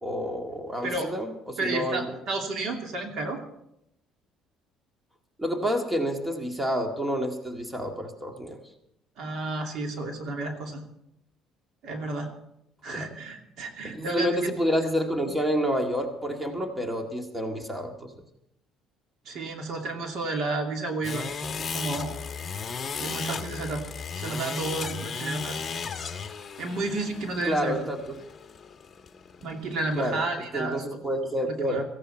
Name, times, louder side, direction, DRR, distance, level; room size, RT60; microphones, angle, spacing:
voice 1, 0.0-2.1 5.4-8.6 12.9-13.1 13.8-18.1 27.5-28.0 30.0-30.2 30.5-31.8, equal, 10° right, 3 dB, 1.9 m, -29 dB
voice 2, 1.6-3.4 9.2-10.8 11.8-12.3 12.8-14.4 19.2-21.3 21.6-22.1 23.0-23.9 24.1-25.6 26.6-27.8 29.4-31.0 31.5-31.8, right 2 dB, 65° right, 3 dB, 2.7 m, -31 dB
sound 1, 21.0-30.2, left 6 dB, 30° left, 1.3 m, -36 dB
17.0 x 15.5 x 4.3 m, 0.78 s
cardioid pair, 115°, 0 cm